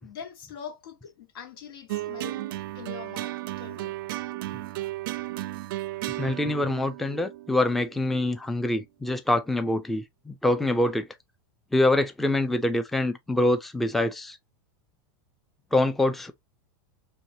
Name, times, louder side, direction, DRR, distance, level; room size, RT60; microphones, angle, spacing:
voice 1, 0.0-2.4 2.7-3.9, left 7 dB, 90° left, 1.7 m, -43 dB
sound 1, 1.9-8.4, right 16 dB, 70° right, 0.4 m, -34 dB
voice 2, 6.2-11.1 11.7-14.4 15.7-16.3, left 1 dB, ahead, 0.3 m, -25 dB
4.3 x 3.0 x 2.7 m
supercardioid pair, 155°, 12 cm